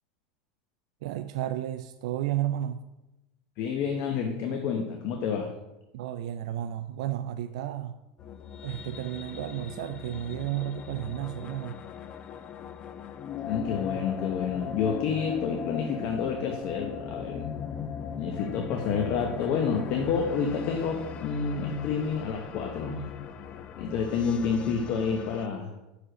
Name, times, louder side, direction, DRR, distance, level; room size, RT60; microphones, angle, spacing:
voice 1, 1.0-2.8 5.9-8.0 8.6-11.8, right 12 dB, 75° right, 9 dB, 0.3 m, -32 dB
voice 2, 3.6-5.5 13.4-17.5 18.1-23.0 23.8-25.7, left 6 dB, 50° left, 3 dB, 0.8 m, -29 dB
sound 1, 8.2-25.5, left 7 dB, 30° left, 0.4 m, -39 dB
6.1 x 4.9 x 5.0 m, 0.99 s
supercardioid pair, 140°, 3 cm